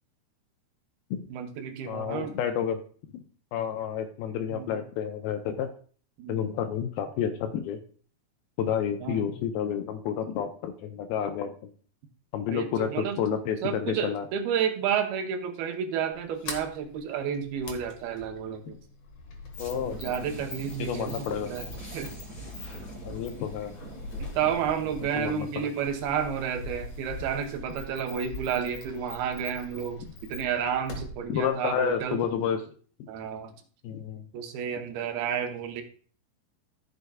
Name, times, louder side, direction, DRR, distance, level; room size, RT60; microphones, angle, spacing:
voice 1, 1.3-2.3 4.5-4.8 6.2-6.4 9.0-9.3 12.5-13.2 13.6-18.8 19.9-21.7 21.9-22.1 24.2-32.2 33.1-33.5 34.3-35.8, right 8 dB, 75° right, 5 dB, 2.7 m, -31 dB
voice 2, 1.9-2.8 3.1-3.2 3.5-5.7 6.3-7.8 8.6-11.5 12.3-14.3 19.6-20.0 20.8-21.5 23.1-23.7 25.2-25.7 31.3-32.7 33.0-33.1 33.8-34.3, left 8 dB, 80° left, 7 dB, 2.3 m, -30 dB
Sliding door, 16.1-32.5, left 2 dB, 55° left, 1.7 m, -43 dB
sound 1, 19.5-27.6, equal, 20° left, 3.4 m, -44 dB
14.0 x 6.6 x 2.3 m, 0.43 s
omnidirectional pair, 4.6 m